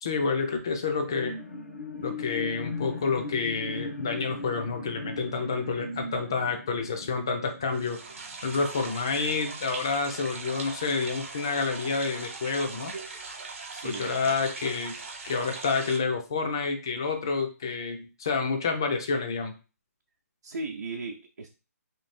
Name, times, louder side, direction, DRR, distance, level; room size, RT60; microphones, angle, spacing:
voice 1, 0.0-1.3 2.0-8.0 8.4-12.9 13.8-15.0 15.2-19.5, left 4 dB, 15° left, 6 dB, 0.3 m, -29 dB
sound 1, 0.9-8.7 9.2-9.3, left 2 dB, 60° left, 0.8 m, -38 dB
sound 2, 7.7-16.0, right 3 dB, 50° right, 0.9 m, -40 dB
voice 2, 13.7-14.3 20.4-21.5, right 3 dB, 80° right, 0 dB, 0.7 m, -37 dB
3.2 x 2.7 x 4.2 m, 0.32 s
hypercardioid pair, 180°, 9 cm